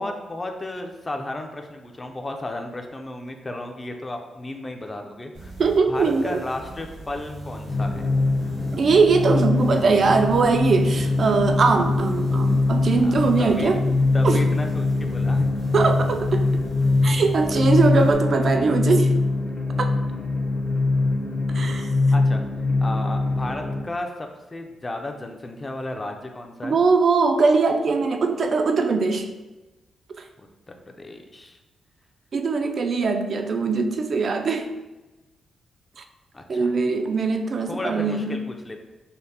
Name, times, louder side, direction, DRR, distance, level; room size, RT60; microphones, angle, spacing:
voice 1, 0.0-5.5 5.9-8.1 13.0-13.7 14.1-15.5 21.7-22.4 22.8-26.8 30.4-30.5 30.9-31.6 36.3-36.8 37.7-38.8, left 2 dB, 20° left, 4 dB, 0.4 m, -34 dB
sound 1, 5.3-18.1, right 1 dB, 85° right, 1.4 m, -40 dB
voice 2, 5.6-6.4 8.7-13.8 14.2-14.4 15.7-16.6 17.0-19.1 19.8-19.9 21.5-21.9 26.6-29.3 32.3-34.7 36.0-36.1 36.5-38.4, right 4 dB, 50° right, 6 dB, 0.3 m, -21 dB
sound 2, 7.7-23.8, left 3 dB, 55° left, 0.8 m, -22 dB
5.2 x 2.0 x 2.8 m, 1.1 s
cardioid pair, 105°, 0 cm